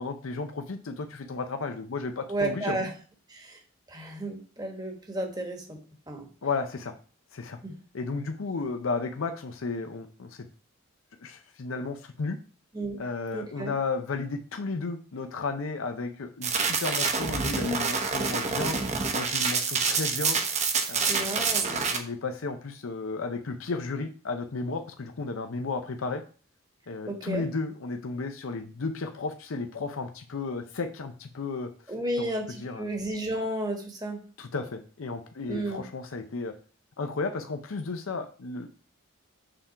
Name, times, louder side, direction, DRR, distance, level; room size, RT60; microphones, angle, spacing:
voice 1, 0.0-2.8 6.4-6.9 7.3-7.6 7.9-10.4 11.2-12.4 13.0-18.8 19.1-20.4 20.9-26.2 26.9-31.7 32.2-32.3 32.6-32.9 34.4-36.5 37.0-38.7, left 4 dB, 80° left, 7 dB, 0.6 m, -33 dB
voice 2, 2.3-2.9 3.3-3.6 3.9-5.8 6.1-6.3 7.6-7.8 12.7-13.0 13.3-13.7 21.1-21.8 27.1-27.5 31.9-34.2 35.5-35.8, right 1 dB, 20° right, 3 dB, 1.2 m, -32 dB
sound 1, 16.4-22.0, right 5 dB, 35° right, 0.8 m, -27 dB
6.7 x 3.8 x 5.6 m, 0.39 s
head